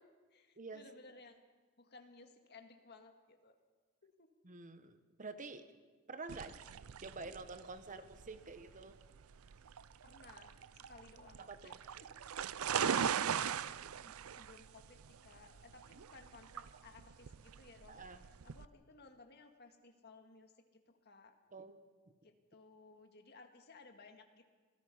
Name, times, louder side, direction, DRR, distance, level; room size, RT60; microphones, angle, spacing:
voice 1, 0.0-1.4 1.8-3.6 4.0-4.3 10.0-12.1 13.0-18.1 18.4-21.4 22.2-24.4, left 3 dB, 50° left, 4 dB, 1.9 m, -59 dB
voice 2, 0.6-0.9 4.4-5.7 6.1-6.6 7.0-9.0 11.5-11.8 17.9-18.2 21.5-21.8, right 3 dB, 35° right, 10 dB, 1.1 m, -48 dB
sound 1, 6.3-18.7, right 8 dB, 85° right, 0.5 m, -40 dB
27.0 x 17.5 x 5.6 m, 1.4 s
head